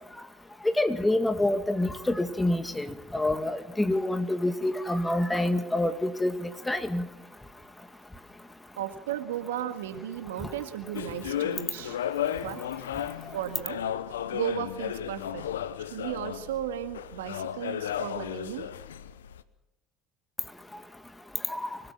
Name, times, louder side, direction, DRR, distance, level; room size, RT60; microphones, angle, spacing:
voice 1, 0.6-7.1 21.5-21.8, left 1 dB, 10° left, 10 dB, 2.2 m, -27 dB
voice 2, 8.8-12.0 12.3-12.6 13.3-13.8 14.3-15.5 15.9-18.7, right 10 dB, 80° right, 9 dB, 1.9 m, -35 dB
sound 1, 10.9-19.4, left 10 dB, 85° left, 0.9 m, -34 dB
24.5 x 18.0 x 7.6 m, 0.90 s
hypercardioid pair, 70°, 0 cm